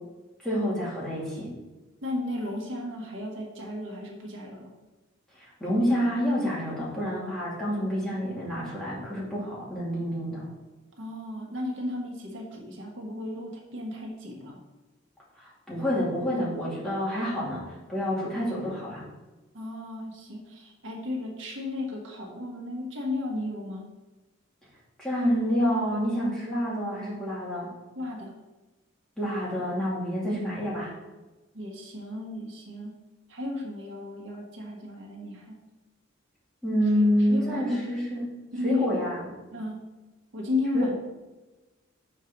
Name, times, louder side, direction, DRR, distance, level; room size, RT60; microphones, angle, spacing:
voice 1, 0.4-1.5 5.3-10.4 15.4-19.0 25.0-27.7 29.2-30.9 36.6-38.3 38.6-39.3 40.7-40.9, equal, 5° left, -8 dB, 2.4 m, -28 dB
voice 2, 2.0-4.7 11.0-14.6 19.5-23.8 27.9-28.3 31.5-33.0 33.3-35.6 37.3-37.8 38.5-38.9 39.5-39.8 40.3-40.9, left 2 dB, 75° right, 0 dB, 1.5 m, -34 dB
6.5 x 4.6 x 5.9 m, 1.1 s
head